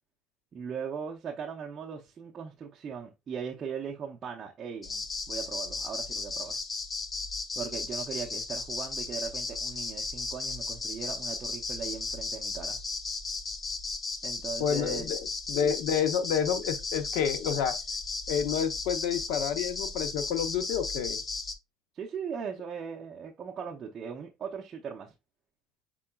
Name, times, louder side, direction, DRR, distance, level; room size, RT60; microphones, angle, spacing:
voice 1, 0.5-6.6 7.6-12.8 14.2-15.0 21.9-25.1, right 6 dB, 25° right, 0.6 m, -39 dB
sound 1, 4.8-21.5, left 3 dB, 20° left, 0.5 m, -35 dB
voice 2, 14.6-17.7 18.3-21.2, left 8 dB, 80° left, 0.7 m, -29 dB
5.7 x 3.7 x 2.3 m
cardioid pair, 165°, 0 cm